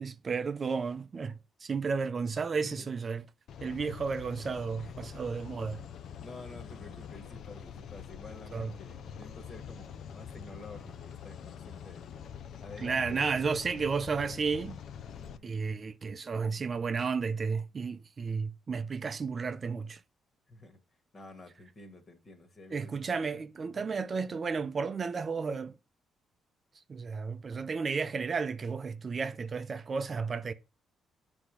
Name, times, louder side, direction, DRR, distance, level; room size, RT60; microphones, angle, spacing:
voice 1, 0.0-3.2 3.6-5.8 8.5-8.7 12.8-14.8 15.4-20.0 22.7-25.7 26.9-30.5, right 5 dB, 40° right, 0.6 m, -33 dB
voice 2, 2.6-2.9 4.8-5.3 6.2-12.1 12.6-13.3 15.1-15.5 20.5-20.8 21.1-23.0 23.7-23.9, left 2 dB, 40° left, 1.8 m, -50 dB
sound 1, 3.5-15.4, left 8 dB, 70° left, 0.6 m, -45 dB
8.1 x 3.5 x 6.2 m
cardioid pair, 90°, 0 cm